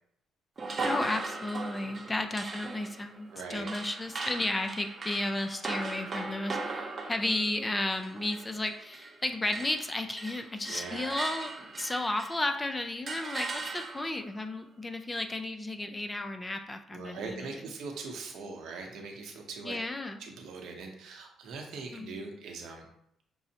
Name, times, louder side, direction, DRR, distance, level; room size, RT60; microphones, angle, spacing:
sound 1, 0.6-9.2 9.5-12.5 13.1-14.3, right 3 dB, 40° right, 0.6 m, -39 dB
voice 1, 0.8-17.7 19.6-20.3 21.9-22.3, left 2 dB, 20° left, 6 dB, 0.4 m, -33 dB
voice 2, 3.3-3.7 10.7-11.2 16.9-19.8 20.2-22.9, right 4 dB, 75° right, 2 dB, 0.8 m, -41 dB
6.0 x 2.0 x 2.8 m, 0.75 s
cardioid pair, 90°, 0 cm